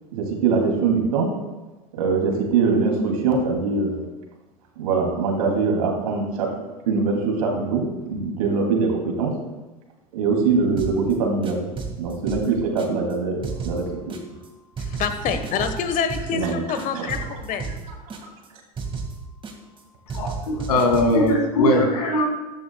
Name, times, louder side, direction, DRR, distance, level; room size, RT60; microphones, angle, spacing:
voice 1, 0.1-1.3 1.9-4.0 4.8-6.5 6.9-9.3 10.1-11.7 12.0-14.2 16.3-16.6 16.9-17.1, right 4 dB, 70° right, 1 dB, 2.7 m, -22 dB
sound 1, 10.8-11.1 11.4-13.1 13.4-14.5 14.8-16.5 16.8-18.5 18.8-19.8 20.1-21.3, right 4 dB, 25° right, 1.9 m, -33 dB
voice 2, 14.8-17.7, left 6 dB, 45° left, 8 dB, 1.3 m, -27 dB
voice 3, 20.1-22.3, left 1 dB, 75° left, 3 dB, 2.2 m, -20 dB
14.0 x 12.5 x 2.3 m, 1.1 s
hypercardioid pair, 80°, 20 cm